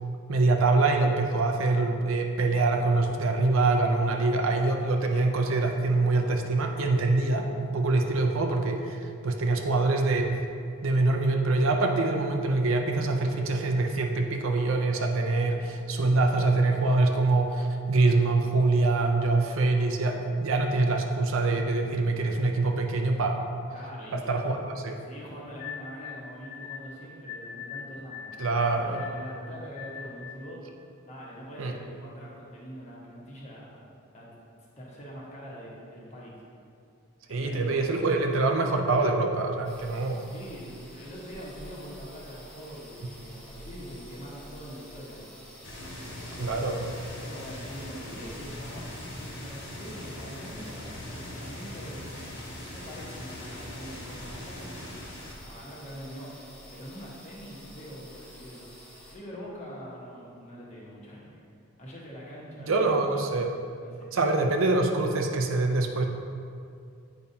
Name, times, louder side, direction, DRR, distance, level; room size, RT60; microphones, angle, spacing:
voice 1, 0.3-10.3 10.8-23.4 24.1-24.6 24.8-25.0 28.4-29.0 31.6-31.7 37.3-40.3 46.4-46.9 62.7-63.6 64.1-66.0, right 3 dB, 70° right, 3 dB, 0.5 m, -25 dB
voice 2, 23.7-24.5 25.0-30.6 31.1-33.8 34.1-34.3 34.8-36.3 37.3-37.9 40.3-45.4 47.2-50.9 51.1-52.1 52.7-55.0 55.4-56.3 56.7-58.6 59.1-61.3 61.8-63.1 63.8-64.2, equal, 30° left, -5 dB, 1.2 m, -43 dB
sound 1, 25.6-30.5, left 7 dB, 85° left, 0.7 m, -42 dB
sound 2, 39.6-59.2, equal, 5° left, 1.1 m, -49 dB
sound 3, 45.6-55.4, left 1 dB, 55° left, 1.6 m, -41 dB
8.6 x 5.2 x 2.8 m, 2.4 s
head